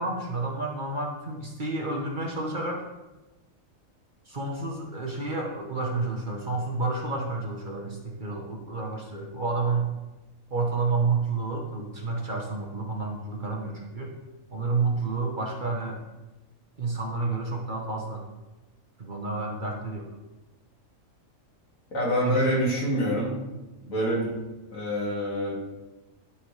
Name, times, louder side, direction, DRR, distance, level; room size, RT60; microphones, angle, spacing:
voice 1, 0.0-2.9 4.3-9.9 10.5-14.1 14.5-16.0 16.8-18.3 19.0-20.1 22.2-22.4, right 3 dB, 40° right, -1 dB, 1.1 m, -30 dB
voice 2, 21.9-23.4 23.9-24.3 24.7-25.5, equal, 75° left, -5 dB, 2.7 m, -26 dB
13.0 x 4.4 x 3.2 m, 1.1 s
omnidirectional pair, 1.4 m